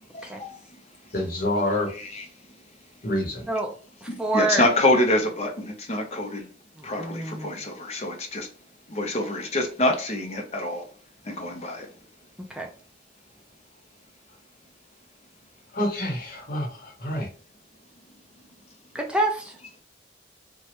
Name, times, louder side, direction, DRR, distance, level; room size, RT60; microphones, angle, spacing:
voice 1, 0.1-0.6 1.9-2.3 4.1-6.5 6.8-8.5 8.9-10.9 11.2-11.9, left 1 dB, 35° left, 0.6 m, -26 dB
voice 2, 1.1-1.9 3.0-3.5 15.7-17.3, left 1 dB, 55° left, 1.0 m, -27 dB
voice 3, 4.0-4.6 7.0-7.5 12.5-12.7 18.9-19.5, right 2 dB, 5° right, 0.3 m, -26 dB
3.0 x 2.2 x 2.8 m
head